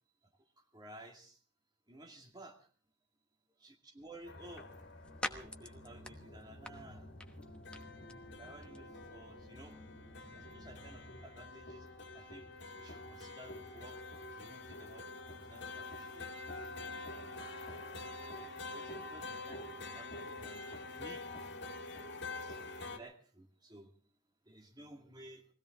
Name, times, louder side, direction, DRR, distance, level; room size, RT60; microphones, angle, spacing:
voice 1, 0.4-1.4 1.9-2.7 3.6-4.8 5.2-7.1 8.4-9.8 10.3-14.0 14.3-15.1 15.4-17.5 18.7-21.3 22.4-23.9 24.4-25.5, right 1 dB, 20° right, 2 dB, 2.3 m, -55 dB
sound 1, 4.0-12.7, left 1 dB, 5° left, 1.1 m, -50 dB
sound 2, 4.2-23.0, left 2 dB, 65° left, 2.1 m, -47 dB
sound 3, 5.0-11.2, left 1 dB, 40° right, 4.5 m, -56 dB
21.5 x 16.5 x 3.8 m, 0.41 s
head